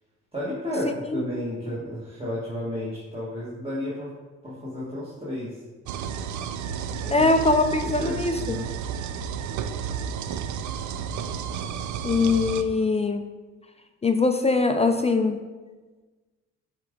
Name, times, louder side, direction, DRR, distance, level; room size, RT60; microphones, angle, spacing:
voice 1, 0.3-4.1 4.4-5.6 7.0-7.3 7.8-8.7, left 1 dB, 20° right, -8 dB, 1.6 m, -32 dB
sound 1, 5.9-12.6, right 7 dB, 75° right, 0.5 m, -32 dB
voice 2, 7.1-8.6 12.0-13.2 14.0-15.4, left 3 dB, 20° left, 7 dB, 0.4 m, -22 dB
7.5 x 3.7 x 3.8 m, 1.3 s
cardioid pair, 90°, 30 cm